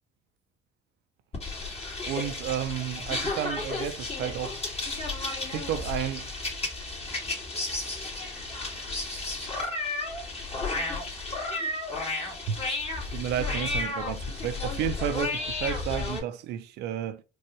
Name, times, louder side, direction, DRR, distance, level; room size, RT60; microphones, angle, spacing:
sound 1, 1.3-16.2, left 3 dB, 35° left, 2.1 m, -33 dB
voice 1, 2.1-4.6 5.5-6.3 12.5-12.6 13.1-17.2, right 10 dB, 85° right, 0.6 m, -32 dB
4.7 x 2.5 x 3.0 m
cardioid pair, 110°, 17 cm